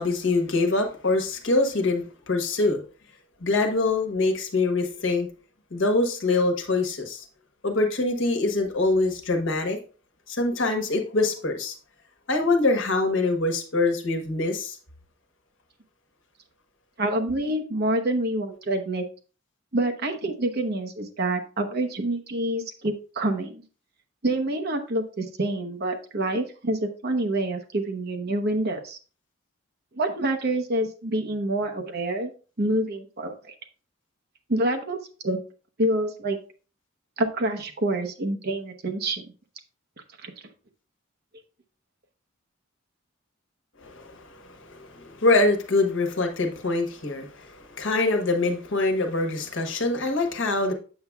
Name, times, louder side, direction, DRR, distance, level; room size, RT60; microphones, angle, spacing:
voice 1, 0.0-2.8 3.4-5.3 5.7-7.2 7.6-9.8 10.3-11.7 12.3-14.8 43.8-50.7, left 2 dB, 70° left, 4 dB, 1.2 m, -24 dB
voice 2, 17.0-19.0 19.7-23.6 24.2-29.0 30.0-32.3 32.6-33.5 34.5-35.4 35.8-36.4 37.2-39.2 40.2-40.3, right 1 dB, 55° right, 4 dB, 1.0 m, -27 dB
7.8 x 6.7 x 2.3 m, 0.37 s
head